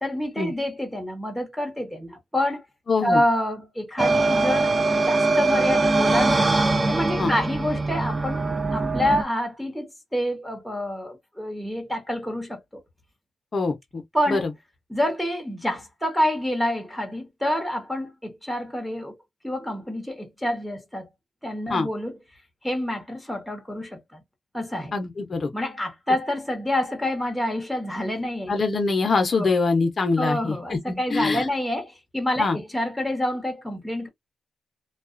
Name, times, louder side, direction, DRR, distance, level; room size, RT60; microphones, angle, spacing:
voice 1, 0.0-2.6 3.0-6.5 6.9-8.4 8.7-12.8 14.1-14.4 14.9-19.2 19.4-21.1 21.4-22.2 22.6-24.2 24.5-24.9 25.5-28.5 29.3-29.5 30.2-34.1, left 1 dB, ahead, 0.9 m, -27 dB
voice 2, 2.9-3.2 7.2-7.3 13.5-14.0 14.3-14.4 21.7-21.9 24.9-25.5 28.5-31.5 32.4-32.6, left 4 dB, 40° left, 0.7 m, -24 dB
sound 1, 4.0-9.2, right 3 dB, 25° right, 0.4 m, -22 dB
2.3 x 2.2 x 2.5 m
cardioid pair, 115°, 0 cm